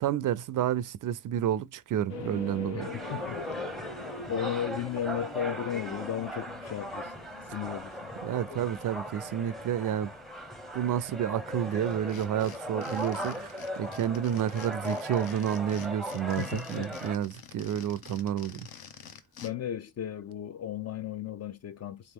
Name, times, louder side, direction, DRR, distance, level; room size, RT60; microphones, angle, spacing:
voice 1, 0.0-2.9 8.2-10.1 10.7-18.7, right 10 dB, 50° right, 0.4 m, -30 dB
sound 1, 2.1-12.2 12.4-12.6 12.9-13.0, left 4 dB, 80° left, 1.2 m, -45 dB
voice 2, 2.7-3.4 4.3-7.1 7.5-8.1 16.4-16.9 19.4-22.1, left 9 dB, 40° left, 0.4 m, -35 dB
sound 2, 2.8-17.2, equal, ahead, 0.6 m, -38 dB
sound 3, 11.8-19.5, left 7 dB, 55° left, 0.8 m, -48 dB
3.6 x 3.0 x 3.5 m
cardioid pair, 115°, 43 cm